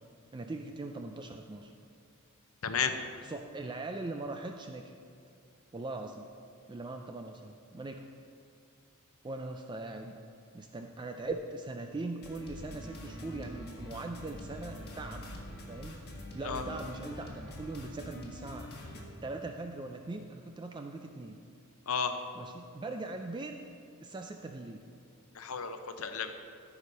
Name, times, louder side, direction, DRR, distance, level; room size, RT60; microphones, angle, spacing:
voice 1, 0.3-1.7 3.2-4.9 5.7-6.3 6.7-8.1 9.2-10.2 10.5-15.3 15.7-16.0 16.3-18.7 19.2-21.4 22.3-23.5 24.0-24.8, right 2 dB, 20° right, 4 dB, 0.3 m, -40 dB
voice 2, 2.6-2.9 16.4-16.6 21.9-22.1 25.3-26.3, left 6 dB, 65° left, 7 dB, 0.7 m, -32 dB
sound 1, 12.2-19.0, left 1 dB, 45° left, 1.6 m, -44 dB
14.0 x 4.9 x 5.4 m, 2.5 s
head